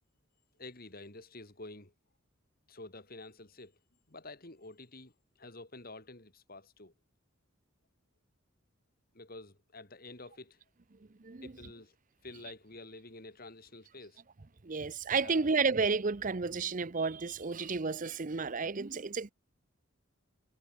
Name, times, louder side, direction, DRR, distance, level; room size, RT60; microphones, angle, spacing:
voice 1, 0.6-1.9 2.7-3.7 4.1-6.9 9.1-10.6 11.4-12.0 12.2-14.2 15.2-15.5, left 2 dB, 45° left, 3.5 m, -49 dB
voice 2, 11.2-11.5 14.6-19.3, right 4 dB, 40° right, 0.7 m, -31 dB
head